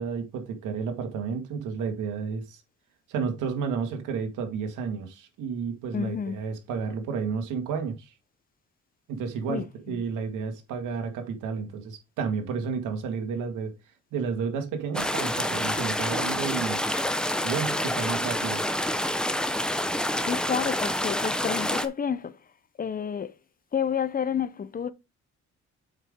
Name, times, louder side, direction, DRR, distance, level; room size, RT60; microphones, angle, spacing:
voice 1, 0.0-2.6 3.1-8.1 9.1-13.7 14.1-16.9 17.4-18.6, right 6 dB, 90° right, 2.0 m, -31 dB
voice 2, 5.9-6.4 9.5-10.0 20.3-22.4 22.8-23.3 23.7-24.9, left 7 dB, 30° left, 0.6 m, -30 dB
sound 1, 14.9-21.9, left 1 dB, 5° left, 0.9 m, -28 dB
7.7 x 5.7 x 3.7 m
cardioid pair, 90°, 30 cm